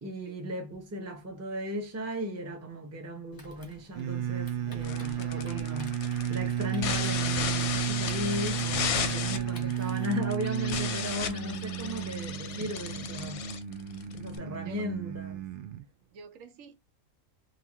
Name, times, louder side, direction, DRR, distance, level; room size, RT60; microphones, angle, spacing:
voice 1, 0.0-13.5 14.1-15.5, left 1 dB, 15° right, 0.6 m, -37 dB
Typing, 3.3-10.2, equal, 20° left, 0.7 m, -50 dB
sound 1, 3.9-15.9, right 10 dB, 60° right, 0.6 m, -33 dB
sound 2, 4.8-14.4, left 8 dB, 65° left, 0.8 m, -35 dB
voice 2, 4.9-5.9 14.6-14.9 16.1-16.8, right 7 dB, 75° right, 1.0 m, -48 dB
2.7 x 2.4 x 2.8 m
omnidirectional pair, 1.4 m